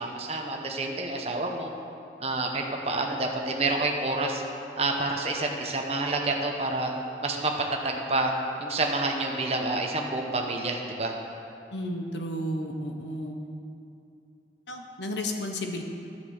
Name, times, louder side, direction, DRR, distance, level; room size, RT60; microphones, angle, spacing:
voice 1, 0.0-1.7 2.2-4.4 4.8-6.9 7.2-7.5 7.8-8.3 8.6-11.1, right 2 dB, 35° right, 1 dB, 1.0 m, -28 dB
voice 2, 11.7-13.4 14.7-15.8, left 1 dB, 85° left, 3 dB, 1.1 m, -32 dB
10.5 x 7.5 x 6.5 m, 2.6 s
head